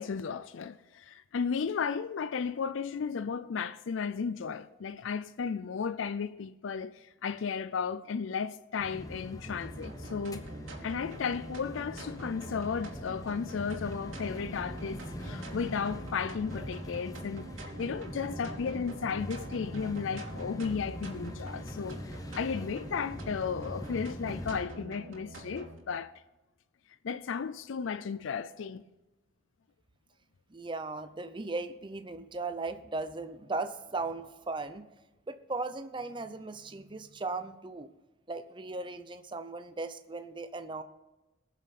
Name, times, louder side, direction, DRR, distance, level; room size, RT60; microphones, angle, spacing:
voice 1, 0.0-10.4 10.8-17.5 17.8-26.1 27.0-28.8, left 6 dB, 75° left, 0.4 m, -34 dB
sound 1, 8.8-24.6, equal, 20° left, 0.9 m, -42 dB
sound 2, 9.4-25.8, right 1 dB, 85° right, 3.0 m, -46 dB
voice 2, 30.5-34.8 35.3-37.9 38.3-40.8, right 3 dB, 25° right, 0.6 m, -37 dB
21.0 x 7.3 x 4.2 m
head